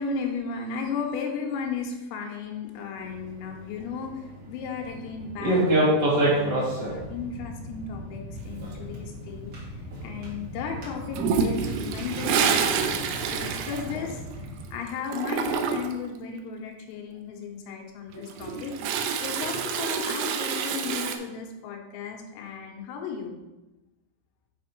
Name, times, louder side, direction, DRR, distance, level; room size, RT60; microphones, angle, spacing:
voice 1, 0.0-6.0 6.3-9.7 10.0-23.4, left 5 dB, 90° left, 2 dB, 3.6 m, -35 dB
sound 1, 3.0-14.4, right 1 dB, 50° right, 1.8 m, -30 dB
sound 2, 6.8-14.7, equal, 75° left, 1.3 m, -40 dB
Toilet flush, 11.1-14.6 14.9-16.1 18.1-21.2, right 6 dB, 80° right, 2.8 m, -28 dB
7.9 x 5.0 x 4.7 m, 1.0 s
omnidirectional pair, 5.9 m